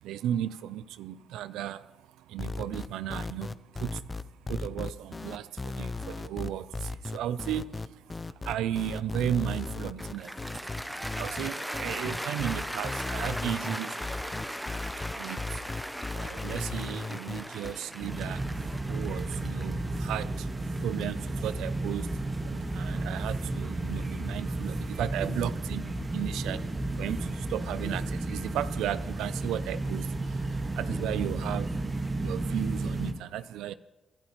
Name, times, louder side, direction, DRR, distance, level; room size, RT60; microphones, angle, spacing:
voice 1, 0.0-14.2 14.9-15.7 16.1-33.7, right 11 dB, 90° right, 0.3 m, -35 dB
sound 1, 2.4-17.7, left 3 dB, 25° left, 0.5 m, -36 dB
Cheering / Applause, 10.0-22.2, equal, ahead, 0.8 m, -38 dB
sound 2, 18.0-33.1, right 2 dB, 25° right, 1.5 m, -33 dB
30.0 x 11.5 x 3.0 m
cardioid pair, 90°, 0 cm